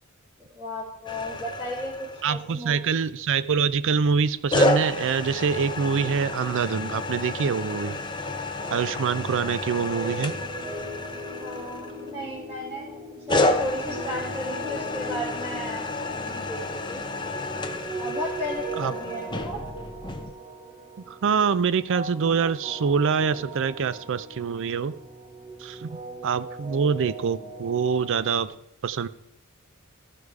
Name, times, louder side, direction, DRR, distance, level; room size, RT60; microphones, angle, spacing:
voice 1, 0.4-3.0 11.4-17.1 18.0-19.6, equal, 20° right, -10 dB, 2.9 m, -35 dB
sound 1, 1.1-2.6 4.5-12.3 13.3-20.3, left 2 dB, 20° left, 0.6 m, -30 dB
voice 2, 2.2-8.0 8.7-10.3 18.8-18.9 21.1-24.9 25.6-28.5 28.8-29.1, right 6 dB, 60° right, 16 dB, 0.4 m, -25 dB
sound 2, 8.6-28.5, right 1 dB, 40° right, 1.5 m, -39 dB
14.0 x 4.9 x 4.8 m, 0.81 s
head